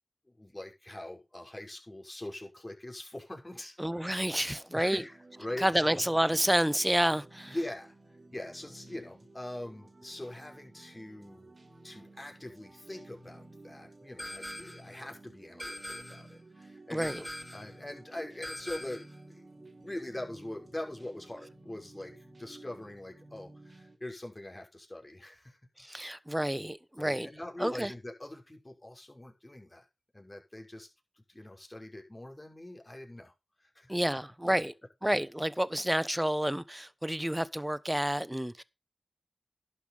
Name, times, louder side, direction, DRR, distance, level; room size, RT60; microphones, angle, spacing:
voice 1, 0.3-3.8 4.7-6.0 7.5-7.9 8.3-11.5 11.8-25.6 26.0-26.1 27.0-29.9 30.1-30.9 31.3-33.3 33.6-34.0, left 1 dB, 25° left, 5.5 m, -43 dB
voice 2, 3.8-5.0 5.6-7.5 16.9-17.2 25.9-27.3 27.6-27.9 33.9-34.7 35.0-38.6, equal, 10° right, 1.1 m, -29 dB
sound 1, 5.1-24.0, right 2 dB, 50° right, 3.1 m, -54 dB
sound 2, 14.2-14.9 15.6-16.3 17.0-17.7 18.4-19.2, left 1 dB, 10° left, 6.7 m, -42 dB
11.5 x 7.1 x 5.7 m
cardioid pair, 45°, 0 cm